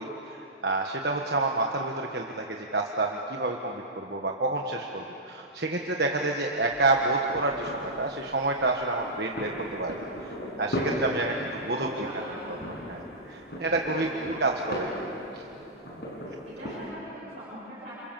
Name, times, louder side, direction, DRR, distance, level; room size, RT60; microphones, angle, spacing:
voice 1, 0.0-11.4 11.6-12.1 12.5-12.6 12.9-14.5 14.8-14.9 15.3-15.4, right 2 dB, 60° right, 1 dB, 1.4 m, -29 dB
sound 1, 6.7-16.9, equal, 60° left, 6.1 m, -37 dB
voice 2, 11.5-12.7 14.1-14.6 15.9-16.2 16.4-17.9, equal, 35° right, -9 dB, 7.0 m, -41 dB
28.5 x 27.0 x 7.6 m, 2.9 s
head